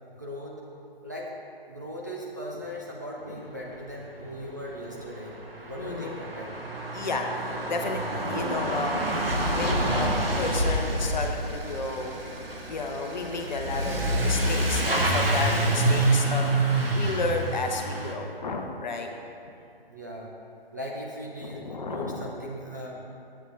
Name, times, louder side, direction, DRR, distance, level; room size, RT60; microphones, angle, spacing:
voice 1, 0.2-0.6 1.0-1.3 1.7-5.3 5.7-6.6 19.9-20.3 20.7-23.0, equal, 20° right, -4 dB, 0.4 m, -38 dB
Truck / Accelerating revving vroom, 4.5-4.6 4.7-18.1, right 1 dB, 70° right, 1.2 m, -27 dB
voice 2, 5.8-6.2 6.9-9.2 9.5-10.1 10.4-12.2 12.7-16.5 16.9-19.1 21.4-22.2, left 3 dB, 50° left, 3 dB, 0.9 m, -32 dB
10.5 x 8.1 x 2.5 m, 2.6 s
figure-of-eight pair, 140°, 30 cm